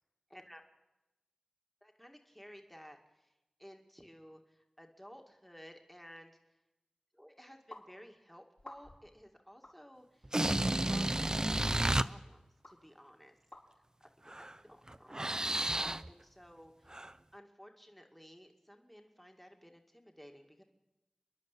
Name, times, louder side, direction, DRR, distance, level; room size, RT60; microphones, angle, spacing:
voice 1, 0.3-0.6 1.8-3.3 3.6-6.4 7.1-10.3 10.8-11.2 11.5-13.3 14.3-14.4 14.6-15.1 15.5-17.0 17.3-20.6, equal, 5° left, 3 dB, 2.2 m, -55 dB
sound 1, 7.7-7.9 8.6-9.1 9.6-9.8 10.7-10.8 11.7-11.8 12.6-12.7 13.5-13.6, left 1 dB, 60° left, 5.6 m, -51 dB
sound 2, 10.2-12.0 14.3-14.5 14.9-16.1 16.9-17.1, right 1 dB, 30° right, 0.6 m, -31 dB
29.5 x 11.0 x 8.5 m, 1.0 s
wide cardioid pair, 40°, 2 cm